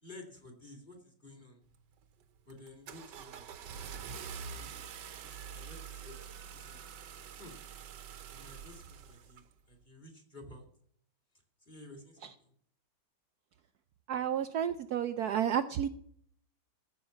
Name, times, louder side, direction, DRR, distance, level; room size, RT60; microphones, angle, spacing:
voice 1, 0.0-1.6 2.5-4.9 5.2-6.2 6.5-6.9 7.4-7.6 8.3-10.7 11.6-12.5, left 2 dB, 20° left, 4 dB, 2.9 m, -53 dB
Car / Engine starting, 1.7-2.0 2.5-9.5, right 7 dB, 60° right, 1.4 m, -46 dB
voice 2, 14.1-15.9, right 9 dB, 80° right, 10 dB, 0.8 m, -31 dB
15.0 x 5.7 x 7.2 m, 0.64 s
omnidirectional pair, 2.3 m